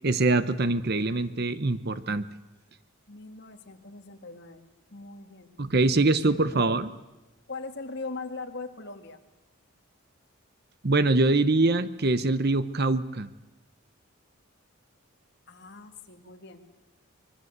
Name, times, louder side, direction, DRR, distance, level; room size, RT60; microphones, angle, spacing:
voice 1, 0.0-2.3 5.6-6.9 10.8-13.3, right 2 dB, 45° right, 14 dB, 0.9 m, -24 dB
voice 2, 3.1-5.5 6.5-6.7 7.5-9.2 15.5-16.6, left 3 dB, 50° left, 6 dB, 2.2 m, -40 dB
25.5 x 22.5 x 8.2 m, 1.1 s
head